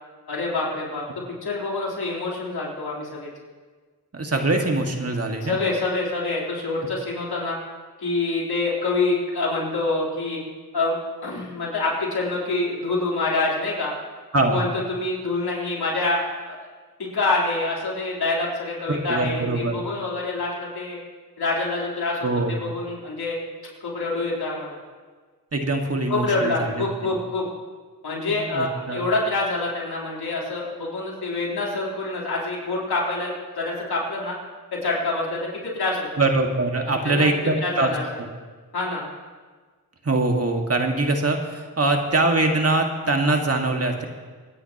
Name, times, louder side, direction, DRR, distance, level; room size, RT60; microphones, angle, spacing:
voice 1, 0.3-1.0 1.4-3.3 5.4-7.6 8.0-10.4 10.7-10.9 11.2-13.9 14.5-16.6 17.0-21.0 21.4-23.4 23.8-24.8 26.1-27.5 28.0-34.4 34.7-36.1 36.9-37.3 37.6-38.0 38.7-39.1, left 2 dB, 80° left, -4 dB, 3.9 m, -26 dB
voice 2, 4.1-5.6 14.3-14.7 18.9-19.8 22.2-22.6 25.5-27.2 28.3-29.0 36.2-37.9 40.0-44.1, right 2 dB, 40° right, 3 dB, 1.9 m, -23 dB
26.5 x 9.9 x 3.0 m, 1.5 s
cardioid pair, 55°, 38 cm